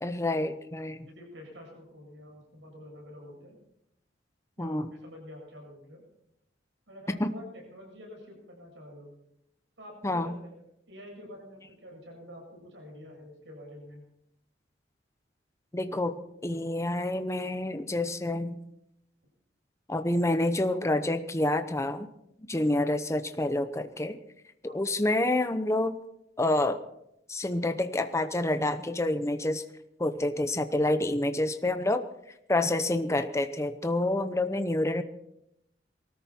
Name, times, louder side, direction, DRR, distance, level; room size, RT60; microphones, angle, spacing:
voice 1, 0.0-1.1 4.6-4.9 7.1-7.3 10.0-10.4 15.7-16.1 16.4-18.6 19.9-22.1 22.5-24.2 24.7-25.9 26.4-26.8 27.3-29.6 30.0-32.0 32.5-35.0, left 1 dB, 15° left, 8 dB, 0.8 m, -28 dB
voice 2, 1.0-3.6 4.6-6.0 6.9-9.1 9.8-14.0 24.7-24.9, left 1 dB, 80° right, 0 dB, 7.9 m, -47 dB
23.5 x 13.5 x 4.4 m, 0.79 s
head